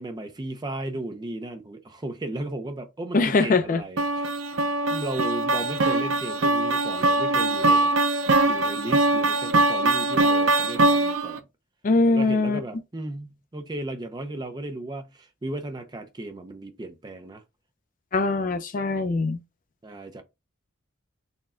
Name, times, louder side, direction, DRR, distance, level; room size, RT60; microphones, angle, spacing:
voice 1, 0.0-4.3 4.9-7.9 8.4-11.4 12.1-17.4 19.8-20.2, right 2 dB, 20° right, 0.5 m, -35 dB
voice 2, 3.1-3.8 11.8-12.6 18.1-19.4, left 3 dB, 40° left, 0.4 m, -22 dB
sound 1, 4.0-11.4, right 2 dB, 75° right, 0.5 m, -22 dB
4.2 x 2.2 x 3.7 m
head